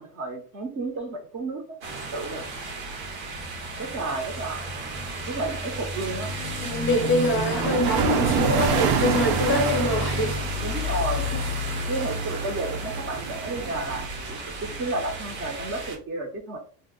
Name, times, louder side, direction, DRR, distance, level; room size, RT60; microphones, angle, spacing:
voice 1, 0.0-1.6 2.1-2.5 3.8-4.7 5.2-6.3 10.6-11.3 11.9-16.6, right 2 dB, 30° right, 0.5 m, -32 dB
sound 1, 1.8-16.0, equal, 90° right, 1.1 m, -32 dB
voice 2, 6.6-11.0 11.3-11.4, left 2 dB, 25° left, 0.5 m, -25 dB
sound 2, 6.9-14.1, right 7 dB, 70° right, 0.7 m, -28 dB
2.6 x 2.0 x 3.8 m
cardioid pair, 135°, 48 cm